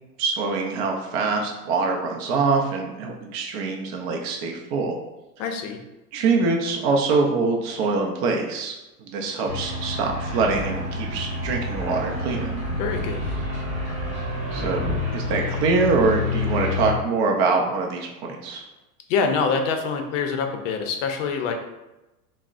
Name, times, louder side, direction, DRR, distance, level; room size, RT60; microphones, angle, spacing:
voice 1, 0.2-5.0 6.1-8.7 9.0-12.5 14.5-18.6, right 4 dB, 45° right, 1 dB, 0.4 m, -24 dB
voice 2, 5.4-5.8 12.8-13.2 19.1-21.5, left 5 dB, 55° left, 4 dB, 0.5 m, -25 dB
sound 1, 9.5-16.9, left 2 dB, 25° right, 1.5 m, -28 dB
3.5 x 2.0 x 2.4 m, 1.0 s
hypercardioid pair, 125°, 46 cm